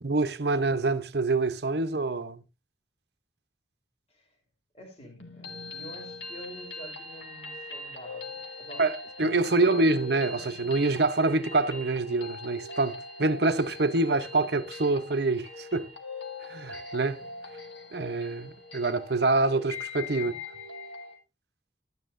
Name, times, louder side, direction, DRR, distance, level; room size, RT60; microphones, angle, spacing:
voice 1, 0.0-2.4 8.8-8.9 9.2-15.9 16.5-17.2 17.9-20.3, right 3 dB, 60° right, 0.8 m, -26 dB
voice 2, 4.7-8.9 9.5-9.8 20.2-20.4, equal, 30° left, 2.7 m, -47 dB
sound 1, 5.2-21.2, left 3 dB, 80° left, 1.9 m, -42 dB
12.0 x 9.7 x 2.6 m
head